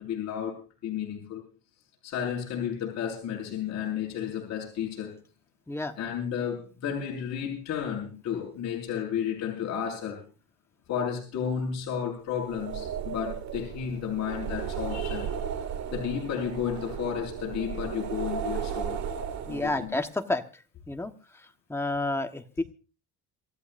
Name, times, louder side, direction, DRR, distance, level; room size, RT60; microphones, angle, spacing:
voice 1, 0.0-1.4 2.0-5.2 6.0-10.2 10.9-15.4 15.9-19.0 19.5-19.9, left 8 dB, 55° left, -2 dB, 5.6 m, -32 dB
sound 1, 12.4-20.0, right 8 dB, 55° right, 1.6 m, -35 dB
voice 2, 19.5-20.4 20.9-21.1 21.7-22.6, left 2 dB, 10° left, 6 dB, 1.1 m, -29 dB
27.0 x 14.0 x 2.5 m, 0.35 s
cardioid pair, 150°, 33 cm